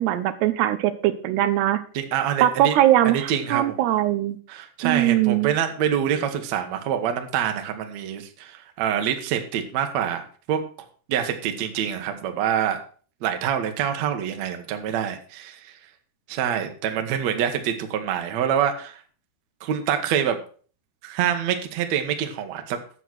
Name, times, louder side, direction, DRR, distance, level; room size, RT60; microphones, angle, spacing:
voice 1, 0.0-1.8 2.4-4.4 4.8-5.5, right 13 dB, 80° right, 11 dB, 2.8 m, -21 dB
voice 2, 1.9-2.8 3.0-3.8 4.5-10.6 11.1-12.8 13.2-15.7 16.3-19.0 19.6-20.4 21.0-22.8, right 9 dB, 60° right, 6 dB, 2.0 m, -26 dB
10.0 x 7.7 x 6.1 m, 0.42 s
omnidirectional pair, 4.8 m